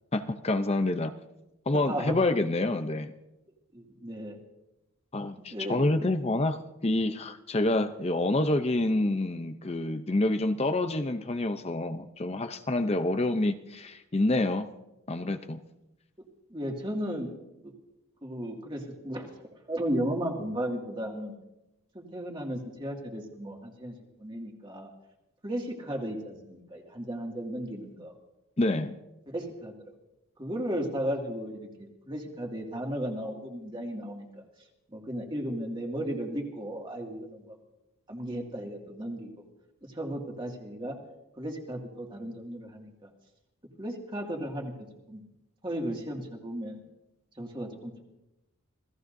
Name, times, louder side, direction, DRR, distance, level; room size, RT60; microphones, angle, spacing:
voice 1, 0.1-1.1 1.7-3.1 5.1-6.6 6.8-14.7 15.1-15.6 28.6-28.9, left 2 dB, 30° left, 9 dB, 0.6 m, -27 dB
voice 2, 1.7-2.2 3.7-4.4 5.4-5.8 16.5-17.3 17.6-17.7 18.2-19.3 19.7-21.3 21.9-24.9 25.4-28.1 29.3-29.7 30.4-34.4 34.9-37.6 38.1-39.3 39.8-40.9 41.4-43.1 43.8-44.7 45.1-45.2 45.6-46.8 47.4-48.0, right 1 dB, 20° right, 0 dB, 2.2 m, -35 dB
27.5 x 17.0 x 2.7 m, 0.95 s
head